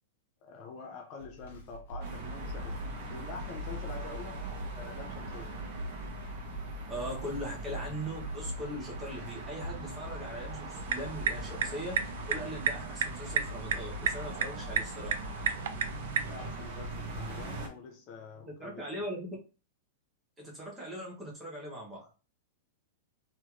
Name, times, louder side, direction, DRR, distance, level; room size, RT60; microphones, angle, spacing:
voice 1, 0.4-4.4 4.7-5.6 16.2-18.8, left 5 dB, 30° left, 2 dB, 0.4 m, -46 dB
sound 1, 1.2-9.8, right 2 dB, 70° left, 1.3 m, -45 dB
sound 2, 2.0-17.7, right 1 dB, 45° right, 0.9 m, -40 dB
voice 2, 6.9-15.2 18.5-19.4 20.4-22.1, equal, 10° right, -3 dB, 0.8 m, -40 dB
sound 3, 10.7-16.4, right 7 dB, 65° right, 0.3 m, -34 dB
3.0 x 2.9 x 2.4 m, 0.34 s
supercardioid pair, 170°, 0 cm